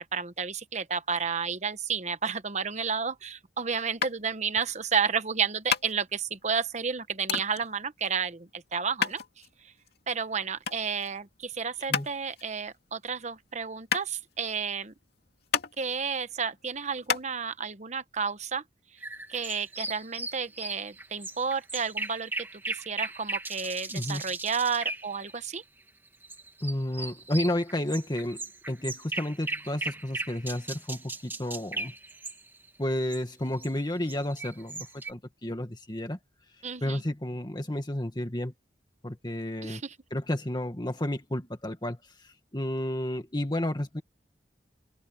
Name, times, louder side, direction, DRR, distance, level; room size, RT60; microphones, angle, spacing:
voice 1, 0.0-9.2 10.1-14.9 15.8-18.6 19.3-25.6 36.6-37.0 39.6-39.9, right 6 dB, 40° right, 1.1 m, -31 dB
sound 1, 4.0-17.3, left 6 dB, 60° left, 2.6 m, -34 dB
sound 2, 19.0-25.6 26.2-32.7 32.9-33.3 33.6-35.1, right 2 dB, 10° right, 2.6 m, -37 dB
voice 2, 23.9-24.2 26.6-31.9 32.8-36.2 36.8-38.5 39.0-39.8 40.1-42.0 42.5-44.0, left 1 dB, 25° left, 1.9 m, -31 dB
open air
head